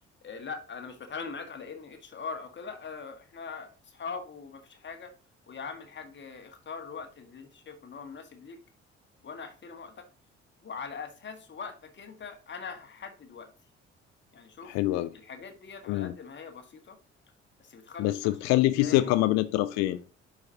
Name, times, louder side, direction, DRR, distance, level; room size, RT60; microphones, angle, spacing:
voice 1, 0.2-5.1 5.5-8.6 9.2-10.0 10.6-13.5 14.3-14.7 15.1-17.0 17.6-18.2 18.5-19.1, left 5 dB, 35° left, 1.6 m, -42 dB
voice 2, 14.6-15.2 15.9-16.2 18.0-20.1, left 16 dB, 55° left, 0.5 m, -25 dB
11.0 x 4.8 x 2.8 m
figure-of-eight pair, 45°, 33 cm